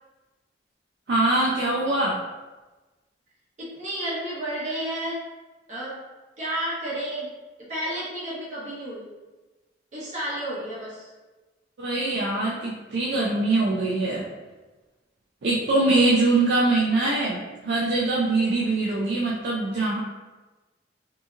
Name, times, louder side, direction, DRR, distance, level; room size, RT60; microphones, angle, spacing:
voice 1, 1.1-2.2 11.8-14.2 15.4-20.0, right 2 dB, 65° right, -5 dB, 0.4 m, -23 dB
voice 2, 3.6-5.2 5.7-6.0 6.4-7.3 7.6-9.1 9.9-11.1, right 1 dB, 40° right, -9 dB, 1.2 m, -31 dB
2.8 x 2.7 x 2.4 m, 1.2 s
head